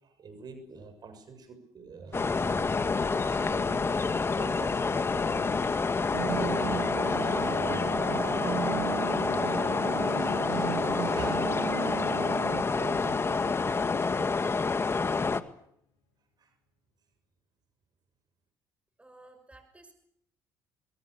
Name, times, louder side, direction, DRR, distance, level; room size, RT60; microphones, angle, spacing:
voice 1, 0.0-3.9 4.3-5.6 6.0-6.9 7.2-8.0 9.1-11.6 11.9-14.5 16.4-16.5, right 4 dB, 50° right, 9 dB, 7.3 m, -45 dB
sound 1, 2.1-15.4, left 4 dB, 30° left, 1.8 m, -28 dB
sound 2, 4.0-15.5, left 8 dB, 85° left, 6.7 m, -52 dB
sound 3, 6.1-12.6, right 16 dB, 90° right, 1.1 m, -36 dB
voice 2, 19.0-19.9, right 2 dB, 15° right, 8 dB, 5.9 m, -54 dB
24.0 x 22.5 x 8.4 m, 0.72 s
supercardioid pair, 80°, 9 cm